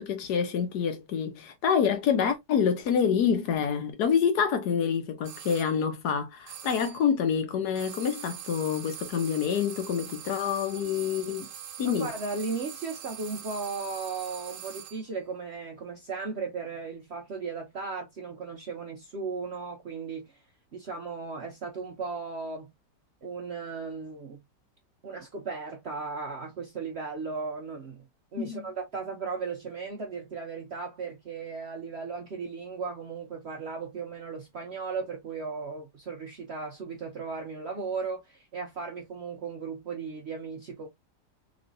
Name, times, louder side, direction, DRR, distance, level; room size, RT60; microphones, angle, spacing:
voice 1, 0.0-11.5 11.8-12.1 28.4-28.7, left 7 dB, 70° left, 1.3 m, -27 dB
sound 1, 5.2-5.7 6.5-7.1 7.7-15.1, right 9 dB, 85° right, 1.3 m, -43 dB
voice 2, 11.8-20.4 20.7-22.7 23.2-24.4 25.0-40.9, right 4 dB, 65° right, 0.6 m, -36 dB
3.2 x 3.0 x 2.5 m
omnidirectional pair, 1.9 m